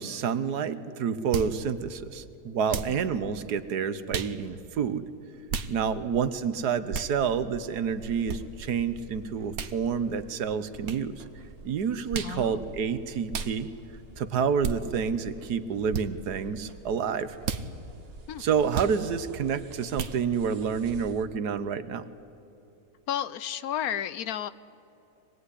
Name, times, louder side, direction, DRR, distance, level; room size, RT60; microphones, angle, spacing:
voice 1, 0.0-5.1 5.7-11.2 11.6-13.7 14.2-17.4 18.4-22.0, right 6 dB, 85° right, 12 dB, 1.6 m, -29 dB
sound 1, 1.3-1.6 2.7-3.0 4.1-4.3 5.5-5.7 6.9-7.1 8.3-8.4 9.5-9.7 10.8-11.0 12.1-12.4 13.3-13.5 14.6-14.8 15.9-16.1 17.4-17.6 18.7-19.0 19.9-20.2, right 6 dB, 65° right, 1.4 m, -32 dB
voice 2, 2.7-3.0 12.2-12.6 18.3-18.4 23.1-24.5, left 10 dB, 70° left, 14 dB, 1.2 m, -32 dB
sound 2, 7.9-21.2, right 3 dB, 40° right, 1.3 m, -49 dB
25.0 x 19.0 x 9.9 m, 3.0 s
omnidirectional pair, 1.7 m